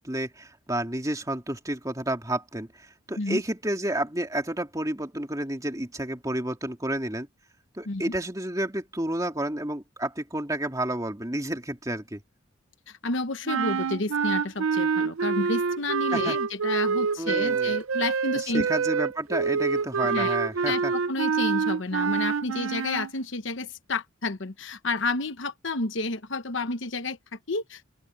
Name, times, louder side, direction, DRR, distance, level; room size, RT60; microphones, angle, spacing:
voice 1, 0.0-7.3 7.7-12.2 16.1-16.4 17.2-17.7 18.3-20.9, right 1 dB, 15° right, 2.7 m, -30 dB
voice 2, 12.9-18.7 20.1-20.4 20.7-27.8, left 3 dB, 65° left, 1.1 m, -30 dB
sound 1, 13.5-23.1, right 5 dB, 85° right, 0.6 m, -26 dB
open air
head